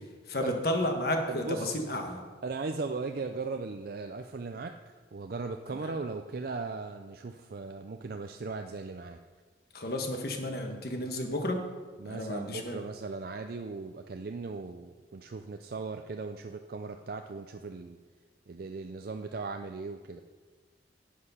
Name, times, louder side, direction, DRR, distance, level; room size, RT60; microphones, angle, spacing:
voice 1, 0.3-2.2 5.9-6.0 9.7-11.6 12.1-12.8, left 1 dB, 55° left, 3 dB, 1.5 m, -32 dB
voice 2, 1.3-1.9 2.4-9.2 12.0-18.0 18.5-20.2, right 4 dB, 55° right, 6 dB, 0.4 m, -38 dB
9.7 x 8.6 x 5.6 m, 1.4 s
head